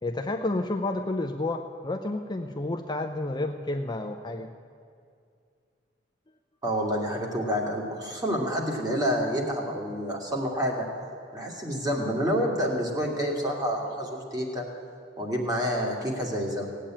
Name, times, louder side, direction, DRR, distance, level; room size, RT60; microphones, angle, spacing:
voice 1, 0.0-4.5, left 2 dB, 25° left, 4 dB, 0.6 m, -30 dB
voice 2, 6.6-10.9 11.3-14.7 15.2-16.7, equal, 20° right, -1 dB, 2.4 m, -28 dB
17.0 x 8.7 x 8.9 m, 2.4 s
head